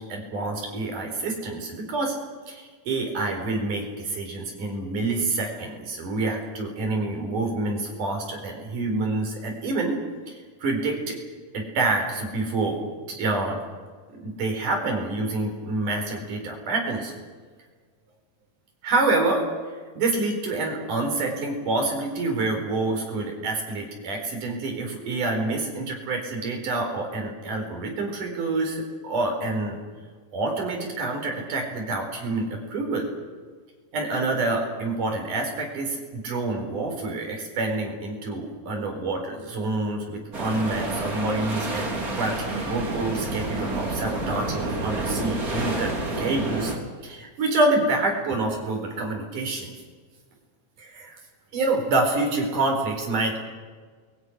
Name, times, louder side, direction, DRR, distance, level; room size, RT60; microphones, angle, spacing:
voice 1, 0.1-2.2 2.5-10.0 10.3-11.2 11.5-13.6 14.1-17.1 18.8-19.4 20.0-29.8 30.3-33.1 33.9-46.7 47.0-49.7 50.8-51.2 51.5-53.4, right 2 dB, 80° right, 2 dB, 6.0 m, -27 dB
sound 1, 40.3-46.8, right 2 dB, 25° right, 3.5 m, -29 dB
28.5 x 22.0 x 6.4 m, 1.5 s
omnidirectional pair, 3.6 m